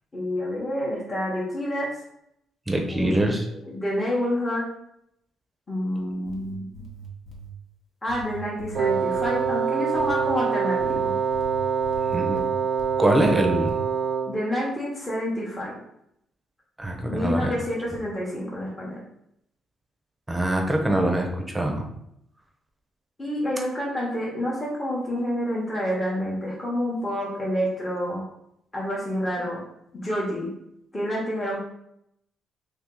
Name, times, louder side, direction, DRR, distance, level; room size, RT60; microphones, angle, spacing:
voice 1, 0.1-1.9 2.9-4.7 5.7-6.7 8.0-11.2 14.3-15.8 17.0-19.0 23.2-28.2 28.7-29.6 29.9-30.5 30.9-31.6, equal, 25° left, -5 dB, 1.1 m, -28 dB
voice 2, 2.7-3.4 12.1-12.4 13.0-13.8 16.8-17.5 20.3-21.9, right 1 dB, 15° right, 2 dB, 0.7 m, -23 dB
sound 1, 6.1-7.5 8.1-9.5 10.0-10.3 10.8-12.9 13.2-13.8, right 3 dB, 55° left, 0.9 m, -41 dB
Wind instrument woodwind instrument, 8.7-14.5, right 6 dB, 60° right, 0.5 m, -25 dB
2.7 x 2.7 x 3.8 m, 0.77 s
cardioid pair, 75°, 0 cm